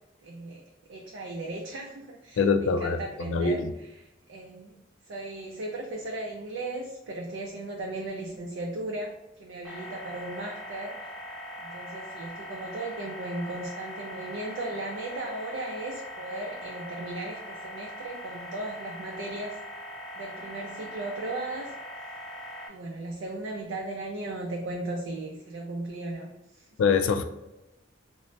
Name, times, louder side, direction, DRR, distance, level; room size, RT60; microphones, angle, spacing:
voice 1, 0.2-0.6 0.9-11.1 11.6-19.6 20.2-21.7 22.7-26.7, right 2 dB, 75° right, 0 dB, 0.4 m, -36 dB
voice 2, 2.4-3.0 3.3-3.7 26.8-27.2, left 5 dB, 80° left, 8 dB, 0.3 m, -23 dB
sound 1, 9.6-22.7, left 1 dB, ahead, 0.4 m, -41 dB
2.6 x 2.0 x 3.1 m, 0.94 s
head